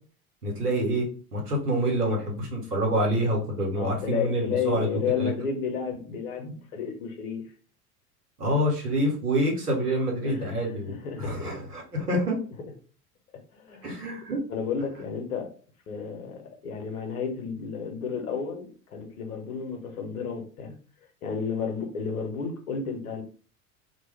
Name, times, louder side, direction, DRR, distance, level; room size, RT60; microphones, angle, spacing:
voice 1, 0.4-1.1 1.3-5.3 8.4-12.4 13.8-14.4, right 1 dB, 85° right, 1.0 m, -27 dB
voice 2, 3.7-7.5 10.2-11.6 13.5-13.9 14.5-15.5 15.9-20.8 21.2-23.2, left 6 dB, 70° left, 0.8 m, -32 dB
2.2 x 2.1 x 3.3 m
figure-of-eight pair, 75°, 45 cm